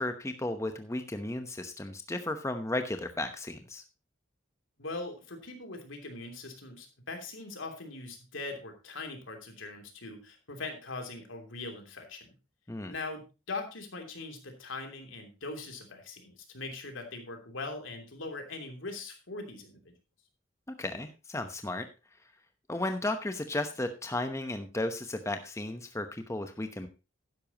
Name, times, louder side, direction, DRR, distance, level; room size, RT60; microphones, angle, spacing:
voice 1, 0.0-3.8 12.7-12.9 20.8-21.9 22.7-26.9, left 2 dB, 15° left, 7 dB, 0.9 m, -34 dB
voice 2, 4.8-12.3 12.9-13.2 13.5-19.9, left 3 dB, 75° left, 4 dB, 3.0 m, -41 dB
12.5 x 10.5 x 2.9 m, 0.29 s
head